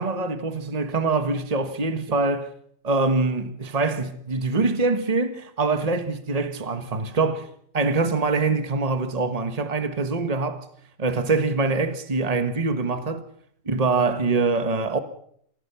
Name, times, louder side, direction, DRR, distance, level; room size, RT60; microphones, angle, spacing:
voice 1, 0.0-2.5 2.8-7.5 7.7-10.6 11.0-13.2 13.6-15.0, right 3 dB, 30° right, 1.5 m, -24 dB
24.5 x 16.5 x 7.0 m
omnidirectional pair, 1.4 m